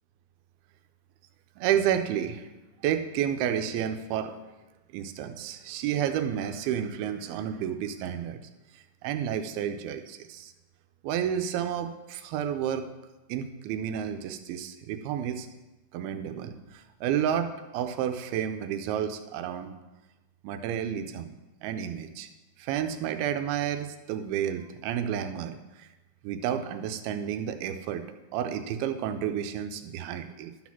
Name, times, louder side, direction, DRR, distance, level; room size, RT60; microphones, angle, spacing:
voice 1, 1.6-2.5 2.8-4.4 4.9-8.4 9.0-10.5 11.0-12.9 13.3-15.5 15.9-19.8 20.4-21.4 21.6-22.3 22.6-25.9 26.2-28.1 28.3-30.5, right 9 dB, 90° right, 8 dB, 2.6 m, -31 dB
12.0 x 4.2 x 5.9 m, 1.1 s
omnidirectional pair, 4.3 m